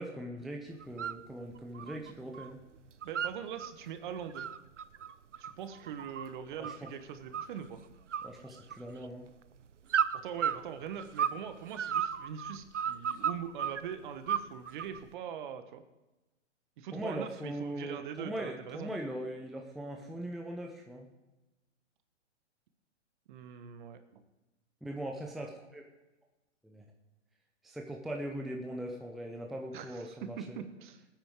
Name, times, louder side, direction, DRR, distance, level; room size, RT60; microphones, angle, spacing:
voice 1, 0.0-2.6 6.6-6.9 8.2-9.3 16.9-21.1 24.8-25.8 26.6-26.8 27.6-30.6, right 1 dB, ahead, 1 dB, 0.6 m, -40 dB
sound 1, 0.8-1.2 1.6-2.5 2.8-3.7 4.1-6.9 7.3-7.8 8.1-9.1 9.9-11.4 11.7-13.8 14.3-15.0, right 8 dB, 80° right, 0.7 m, -33 dB
voice 2, 3.0-4.5 5.4-7.8 10.2-15.8 16.8-19.0 23.3-24.2 29.7-31.0, right 8 dB, 45° right, 9 dB, 1.3 m, -42 dB
19.0 x 9.3 x 3.7 m, 1.0 s
figure-of-eight pair, 125°, 36 cm